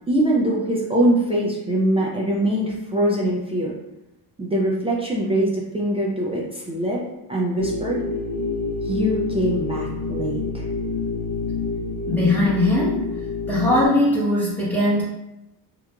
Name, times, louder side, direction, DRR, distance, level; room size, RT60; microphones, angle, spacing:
voice 1, 0.1-3.7 4.4-7.0 7.3-8.0 8.8-10.7, right 1 dB, 15° right, -4 dB, 0.3 m, -23 dB
sound 1, 7.6-13.9, left 3 dB, 40° left, 0.6 m, -27 dB
voice 2, 12.1-13.1 13.5-15.0, left 1 dB, 5° left, -9 dB, 0.8 m, -20 dB
3.0 x 2.3 x 2.2 m, 0.91 s
cardioid pair, 100°, 45 cm